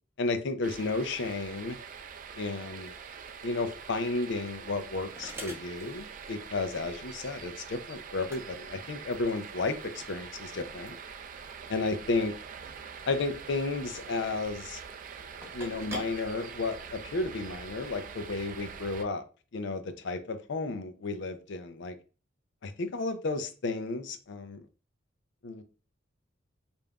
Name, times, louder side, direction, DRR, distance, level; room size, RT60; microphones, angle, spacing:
voice 1, 0.2-1.8 2.4-2.9 3.4-11.0 11.7-12.3 13.1-14.8 15.5-19.3 19.5-22.0 22.6-24.6 25.4-25.6, left 3 dB, 60° left, 0.5 m, -33 dB
sound 1, 0.6-19.0, right 6 dB, 40° right, 0.4 m, -44 dB
sound 2, 4.8-17.2, equal, 15° right, 0.8 m, -49 dB
5.1 x 2.5 x 2.3 m
head